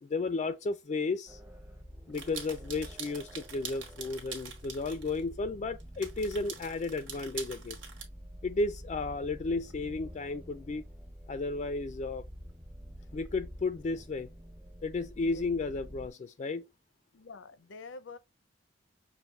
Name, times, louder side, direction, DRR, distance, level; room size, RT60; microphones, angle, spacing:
voice 1, 0.0-1.4 2.1-7.8 8.4-10.8 11.3-12.2 13.1-14.3 14.8-16.7, left 3 dB, 40° left, 0.3 m, -33 dB
sound 1, 1.3-16.1, equal, 10° right, 0.7 m, -48 dB
sound 2, 2.1-5.2 5.8-8.0, right 6 dB, 80° right, 1.4 m, -44 dB
voice 2, 17.1-18.2, left 4 dB, 90° left, 0.6 m, -47 dB
6.2 x 2.5 x 3.2 m
head